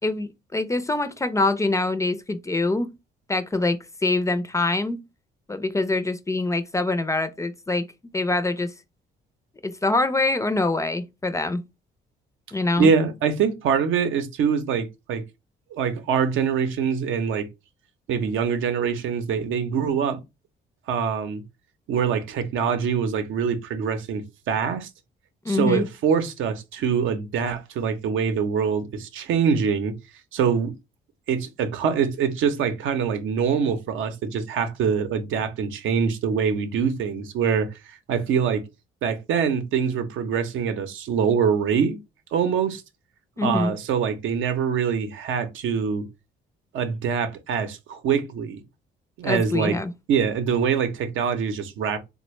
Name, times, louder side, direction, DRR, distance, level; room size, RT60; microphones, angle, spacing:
voice 1, 0.0-2.9 3.3-5.0 5.5-7.8 8.1-8.7 9.6-11.6 12.5-12.9 25.5-25.8 43.4-43.7 49.2-49.9, left 2 dB, 15° left, 0.4 m, -24 dB
voice 2, 12.8-15.2 15.7-17.5 18.1-20.2 20.9-21.4 21.9-24.9 25.5-29.9 30.3-30.7 31.3-38.6 39.0-42.0 42.3-42.8 43.4-46.0 46.7-48.6 49.2-49.8 50.1-52.0, right 6 dB, 80° right, 0.6 m, -24 dB
3.4 x 2.1 x 3.1 m
cardioid pair, 90°, 20 cm